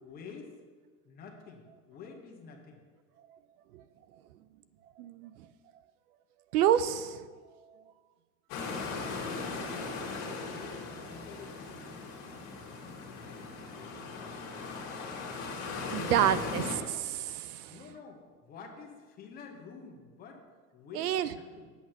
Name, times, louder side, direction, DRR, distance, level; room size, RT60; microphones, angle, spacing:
voice 1, 0.0-0.5 1.0-2.8 10.0-12.1 12.7-13.4 13.7-15.2 17.7-20.4 20.7-21.7, left 5 dB, 20° left, 1 dB, 1.0 m, -50 dB
voice 2, 5.0-5.5 6.5-7.2 7.7-7.8 15.9-17.8 20.9-21.3, right 10 dB, 75° right, 15 dB, 0.7 m, -29 dB
sound 1, 8.5-16.8, left 4 dB, 35° left, 2.0 m, -38 dB
8.4 x 8.3 x 5.9 m, 1.5 s
supercardioid pair, 170°, 46 cm